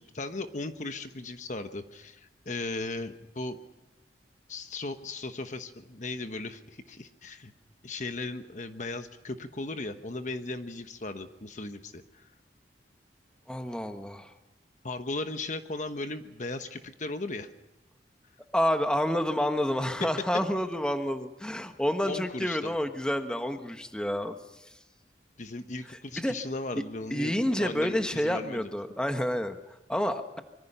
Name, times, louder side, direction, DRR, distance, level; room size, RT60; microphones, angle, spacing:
voice 1, 0.0-3.6 4.5-7.5 7.8-12.3 14.8-17.5 22.1-22.8 25.4-28.7, left 2 dB, 45° left, 8 dB, 1.1 m, -37 dB
voice 2, 13.5-14.3 18.5-24.3 26.2-26.3 27.1-30.4, equal, 5° left, 7 dB, 1.3 m, -29 dB
25.0 x 23.5 x 5.6 m, 0.97 s
head